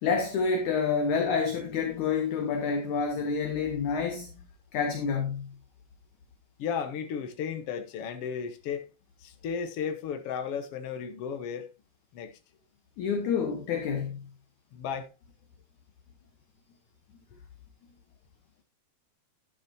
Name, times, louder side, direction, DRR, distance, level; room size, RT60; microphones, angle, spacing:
voice 1, 0.0-4.3 4.7-5.5 13.0-14.2, left 5 dB, 60° left, 2.4 m, -28 dB
voice 2, 6.6-8.8 9.2-11.7 12.1-12.4 14.7-15.1, left 7 dB, 90° left, 1.3 m, -34 dB
11.5 x 10.0 x 2.8 m
omnidirectional pair, 4.4 m